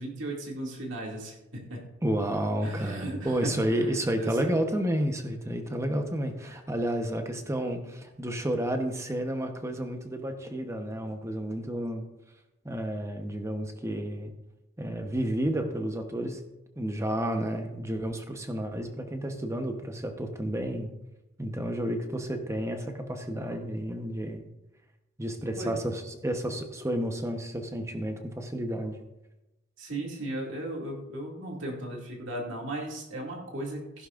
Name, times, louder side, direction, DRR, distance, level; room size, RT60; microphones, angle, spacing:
voice 1, 0.0-1.8 2.6-4.5 6.4-6.5 25.6-25.8 29.8-34.1, right 1 dB, 65° right, -2 dB, 2.4 m, -36 dB
voice 2, 2.0-12.1 12.6-14.3 14.8-16.4 16.8-20.9 21.4-24.5 25.2-29.0, right 1 dB, 15° right, 5 dB, 1.0 m, -31 dB
15.0 x 11.0 x 2.5 m, 0.98 s
head